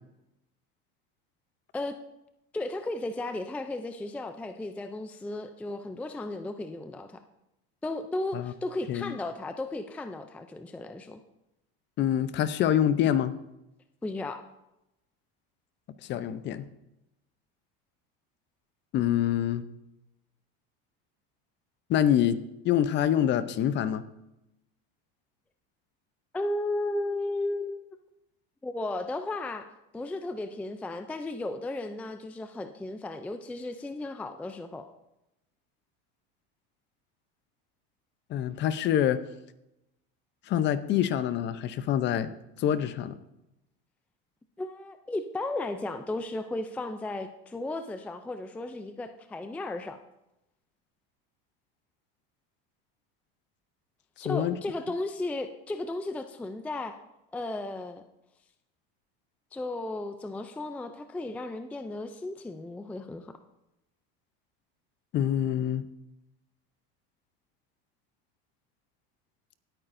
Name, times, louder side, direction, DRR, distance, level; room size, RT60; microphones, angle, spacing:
voice 1, 2.5-7.2 7.8-11.2 14.0-14.4 26.3-28.0 28.6-29.7 29.9-34.9 44.6-50.0 54.2-57.0 57.3-58.0 59.5-63.3, left 2 dB, 5° left, 8 dB, 0.4 m, -35 dB
voice 2, 12.0-13.3 16.0-16.7 18.9-19.6 21.9-22.4 22.6-24.0 38.3-39.2 40.5-42.3 42.6-43.2 54.2-54.6 65.1-65.8, left 10 dB, 40° left, 13 dB, 0.7 m, -26 dB
18.5 x 8.9 x 2.6 m, 0.90 s
supercardioid pair, 140°, 29 cm